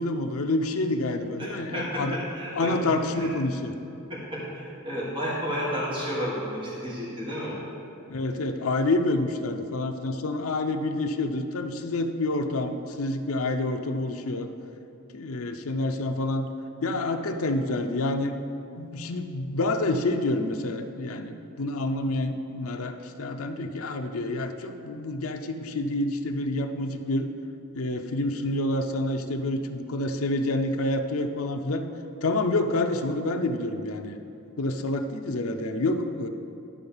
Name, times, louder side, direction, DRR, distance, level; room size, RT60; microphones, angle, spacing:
voice 1, 0.0-2.2 2.5-3.8 8.1-14.5 15.1-16.5 16.8-18.3 18.8-27.3 27.7-31.8 32.2-34.2 34.6-36.3, left 2 dB, 70° left, 6 dB, 0.6 m, -28 dB
voice 2, 1.4-2.8 3.2-3.3 4.1-7.6, equal, 25° right, -6 dB, 1.8 m, -32 dB
11.5 x 3.9 x 7.1 m, 2.7 s
head